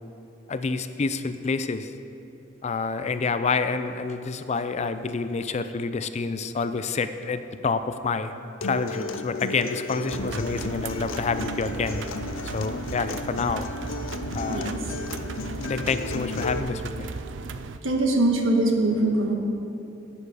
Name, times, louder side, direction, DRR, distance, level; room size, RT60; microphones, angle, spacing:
voice 1, 0.5-1.9 2.6-8.3 8.6-12.0 12.5-13.7 14.3-14.7 15.6-17.1, left 4 dB, 35° left, 11 dB, 0.4 m, -28 dB
Acoustic guitar, 8.6-16.6, left 3 dB, 85° left, 0.6 m, -34 dB
sound 1, 10.1-17.8, right 4 dB, 65° right, 0.5 m, -36 dB
voice 2, 14.4-14.8 17.8-19.3, right 2 dB, 85° right, 1 dB, 1.4 m, -22 dB
11.5 x 9.0 x 4.9 m, 2.9 s
head